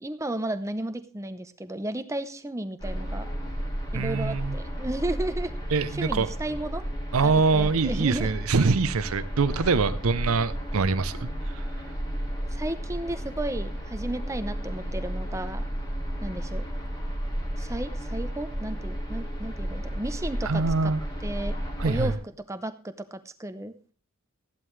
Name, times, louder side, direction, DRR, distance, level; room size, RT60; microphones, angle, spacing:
voice 1, 0.0-3.3 3.9-5.5 5.9-6.8 7.2-8.3 12.5-15.6 16.2-16.7 17.6-20.9 21.2-21.5 21.8-22.1 22.5-23.7, right 1 dB, 15° right, 0.6 m, -33 dB
sound 1, 2.8-22.2, equal, 20° left, 2.6 m, -33 dB
voice 2, 3.9-4.5 5.7-6.3 7.1-11.6 20.4-21.0 21.8-22.1, right 4 dB, 75° right, 0.6 m, -24 dB
14.5 x 11.0 x 3.2 m
head